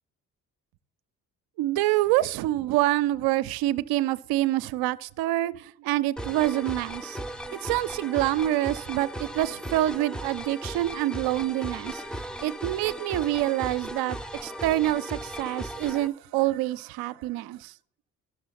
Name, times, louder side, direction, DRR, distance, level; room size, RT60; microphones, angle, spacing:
voice 1, 1.6-7.2 7.5-12.0 12.4-17.7, right 15 dB, 60° right, 0.5 m, -26 dB
sound 1, 6.2-16.1, right 1 dB, ahead, 0.5 m, -37 dB
13.0 x 6.2 x 4.1 m
hypercardioid pair, 45°, 42 cm